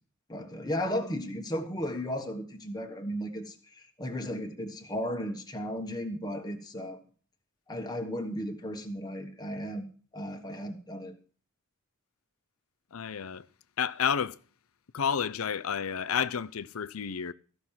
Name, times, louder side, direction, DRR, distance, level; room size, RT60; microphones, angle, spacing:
voice 1, 0.3-7.0 7.7-11.1, equal, 20° left, 1.4 m, -35 dB
voice 2, 12.9-13.4 13.8-14.4 14.9-17.3, left 7 dB, 70° left, 0.6 m, -30 dB
14.5 x 6.1 x 7.3 m
head